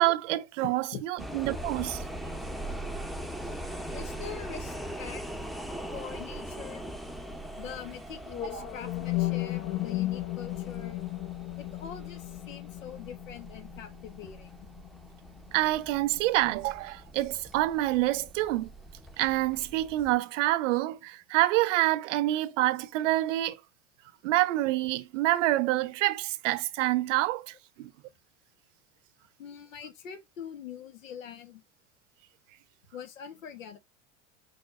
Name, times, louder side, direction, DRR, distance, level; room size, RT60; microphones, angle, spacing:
voice 1, 0.0-2.0 8.5-8.6 15.5-18.7 19.2-23.6 24.2-27.9, right 16 dB, 70° right, 0.7 m, -27 dB
voice 2, 0.6-1.0 3.5-5.2 5.9-6.9 7.6-11.0 11.6-14.5 29.4-31.6 32.9-33.8, left 8 dB, 85° left, 1.3 m, -43 dB
sound 1, 1.2-20.2, right 1 dB, ahead, 0.7 m, -41 dB
sound 2, 8.3-16.3, left 17 dB, 50° left, 0.9 m, -35 dB
4.9 x 4.1 x 2.5 m
hypercardioid pair, 85°, 38 cm